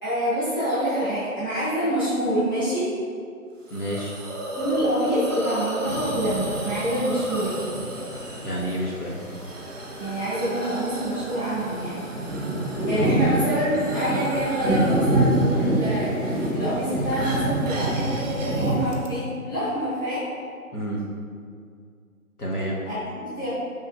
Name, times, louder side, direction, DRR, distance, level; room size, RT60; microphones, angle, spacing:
voice 1, 0.0-2.9 4.5-7.5 10.0-12.0 12.9-20.2 22.8-23.5, right 1 dB, 15° left, -15 dB, 0.8 m, -26 dB
voice 2, 3.7-4.1 8.4-9.2 12.9-13.2 20.7-21.0 22.4-22.8, equal, 80° left, -5 dB, 1.3 m, -28 dB
Hiss, 3.7-19.1, right 1 dB, 60° right, 0.7 m, -35 dB
sound 1, 4.6-17.3, equal, 55° left, 1.0 m, -44 dB
sound 2, 5.8-19.0, right 1 dB, 25° right, 0.6 m, -27 dB
4.4 x 3.5 x 2.4 m, 2.3 s
figure-of-eight pair, 155°, 44 cm